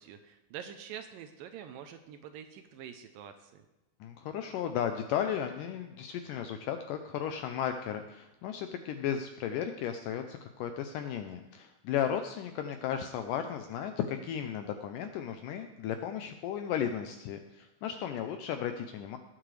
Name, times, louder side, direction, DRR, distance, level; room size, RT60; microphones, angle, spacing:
voice 1, 0.0-3.6, right 9 dB, 80° right, 7 dB, 2.2 m, -46 dB
voice 2, 4.0-19.2, left 9 dB, 85° left, 7 dB, 1.9 m, -35 dB
18.5 x 7.6 x 3.2 m, 0.98 s
omnidirectional pair, 4.3 m